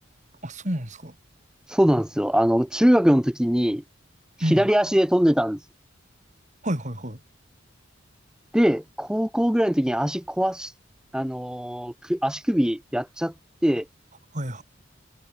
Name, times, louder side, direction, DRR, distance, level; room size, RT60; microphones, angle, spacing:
voice 1, 0.4-1.1 4.4-4.7 6.6-7.2 14.3-14.6, equal, 40° right, 6.6 m, -29 dB
voice 2, 1.7-3.8 4.4-5.6 8.5-10.7 11.1-13.3 13.6-13.8, equal, 5° right, 0.7 m, -22 dB
head